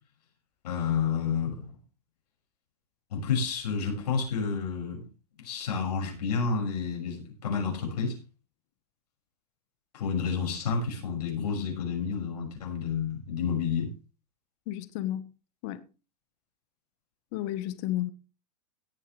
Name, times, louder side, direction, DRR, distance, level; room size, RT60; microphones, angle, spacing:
voice 1, 0.6-1.7 3.1-5.0 5.4-8.2 9.9-13.9, left 6 dB, 80° left, 6.3 m, -30 dB
voice 2, 14.7-15.3 15.6-15.8 17.3-18.1, left 13 dB, 45° left, 1.3 m, -32 dB
17.5 x 9.3 x 3.4 m
hypercardioid pair, 140°, 20 cm